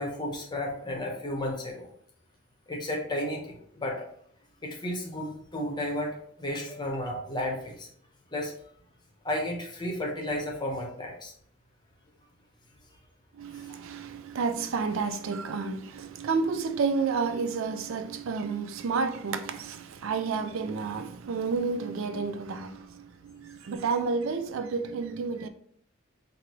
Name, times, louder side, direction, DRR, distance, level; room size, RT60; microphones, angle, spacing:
voice 1, 0.0-1.9 2.7-4.1 4.6-7.9 8.3-8.5 9.2-11.3 13.7-13.8, left 1 dB, 20° left, 0.8 m, -33 dB
voice 2, 13.3-25.5, right 4 dB, 70° right, 0.4 m, -30 dB
4.5 x 2.6 x 3.0 m
head